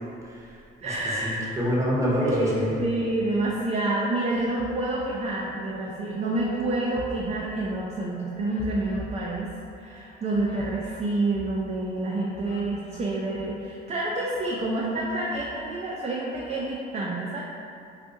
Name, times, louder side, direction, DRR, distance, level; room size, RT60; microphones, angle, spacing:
voice 1, 0.2-2.8, equal, 15° right, -6 dB, 0.8 m, -27 dB
sound 1, 0.8-1.7 2.1-3.7 4.1-13.8 14.1-16.7, left 1 dB, 35° left, 0.5 m, -46 dB
voice 2, 0.8-1.5 2.2-9.5 9.8-17.4, right 2 dB, 35° right, -4 dB, 0.4 m, -28 dB
Keyboard (musical), 6.0-9.0, right 12 dB, 60° left, 1.0 m, -44 dB
2.4 x 2.4 x 3.7 m, 2.5 s
cardioid pair, 90°, 20 cm